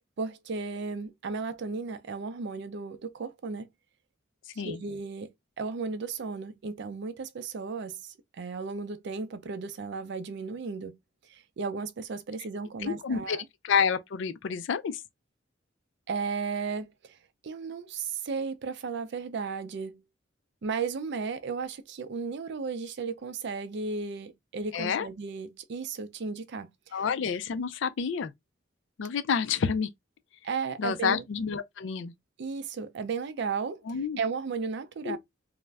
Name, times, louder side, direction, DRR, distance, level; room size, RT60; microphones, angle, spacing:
voice 1, 0.2-3.7 4.6-11.0 11.2-13.5 16.1-17.2 17.4-20.0 20.6-27.0 30.4-31.2 32.4-33.8 34.2-35.2, right 4 dB, 65° right, 0.4 m, -35 dB
voice 2, 12.8-13.4 13.6-15.0 24.7-25.1 26.9-28.3 29.0-29.9 30.8-32.1 33.9-34.2 35.0-35.2, left 6 dB, 70° left, 0.4 m, -29 dB
2.4 x 2.0 x 3.3 m
head